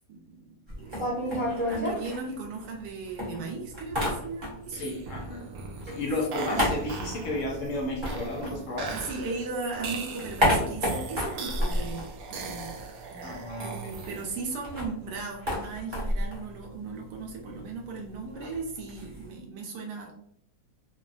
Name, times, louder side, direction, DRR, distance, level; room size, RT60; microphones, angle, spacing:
voice 1, 0.1-4.8 8.9-12.0 12.3-12.7 13.1-20.1, right 4 dB, 85° right, 0 dB, 1.2 m, -37 dB
sound 1, 0.7-2.9 3.2-4.8 5.1-9.2 9.6-12.9 13.1-13.2 13.5-19.3, left 1 dB, 25° right, 0.6 m, -31 dB
sound 2, 4.6-14.5, right 3 dB, 70° right, 0.9 m, -40 dB
voice 2, 4.7-5.4 5.9-9.1 13.2-13.9, left 1 dB, 65° left, 0 dB, 0.8 m, -33 dB
3.2 x 2.2 x 2.4 m, 0.69 s
omnidirectional pair, 1.8 m